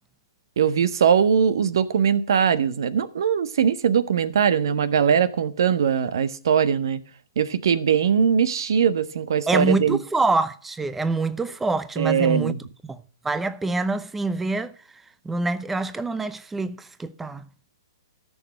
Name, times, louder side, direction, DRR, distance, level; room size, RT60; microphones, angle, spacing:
voice 1, 0.6-7.0 7.4-10.0 12.0-12.6, right 7 dB, 65° right, 1.3 m, -21 dB
voice 2, 9.5-12.6 12.8-14.7 15.2-17.5, right 3 dB, 5° right, 0.7 m, -26 dB
15.0 x 6.7 x 7.6 m
hypercardioid pair, 135°, 2 cm